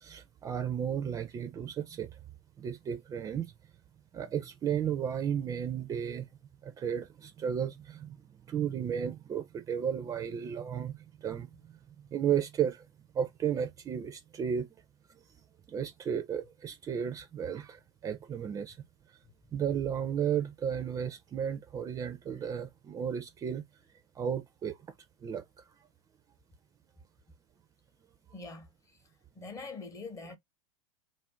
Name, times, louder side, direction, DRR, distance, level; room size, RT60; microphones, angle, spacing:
voice 1, 0.0-2.1 2.6-3.5 4.1-6.3 6.6-8.1 8.5-11.5 12.1-12.9 13.1-14.7 15.7-18.8 19.5-23.6 24.2-24.8 25.2-25.4, right 8 dB, 20° right, 0.4 m, -33 dB
voice 2, 28.3-28.7 29.3-30.4, left 3 dB, 20° left, 0.7 m, -43 dB
2.5 x 2.1 x 3.4 m
hypercardioid pair, 95°, 15 cm